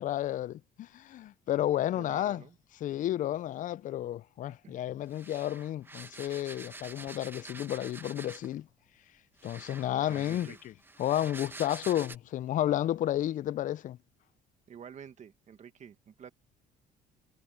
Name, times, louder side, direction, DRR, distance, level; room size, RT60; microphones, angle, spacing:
voice 1, 0.0-2.4 2.8-8.7 9.4-10.7 11.0-14.0, left 12 dB, 50° left, 0.4 m, -32 dB
voice 2, 2.0-2.6 4.6-4.8 9.9-10.6 14.7-16.3, right 8 dB, 45° right, 1.8 m, -49 dB
sound 1, 5.1-8.6 9.4-12.2, right 2 dB, 10° right, 1.1 m, -47 dB
cardioid pair, 110°, 17 cm